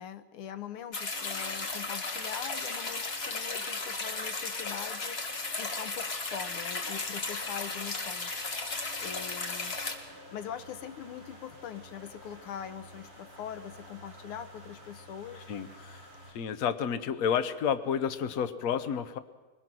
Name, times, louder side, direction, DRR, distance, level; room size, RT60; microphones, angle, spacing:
voice 1, 0.0-8.5 9.0-9.8 10.3-15.5, left 9 dB, 85° left, 10 dB, 1.8 m, -42 dB
sound 1, 0.9-10.0, left 3 dB, 30° left, 1.5 m, -35 dB
sound 2, 1.1-16.3, right 1 dB, 55° right, 6.7 m, -52 dB
voice 2, 15.5-16.1 16.3-19.2, left 7 dB, 55° left, 10 dB, 1.1 m, -30 dB
22.5 x 21.0 x 6.2 m, 1.2 s
omnidirectional pair, 2.4 m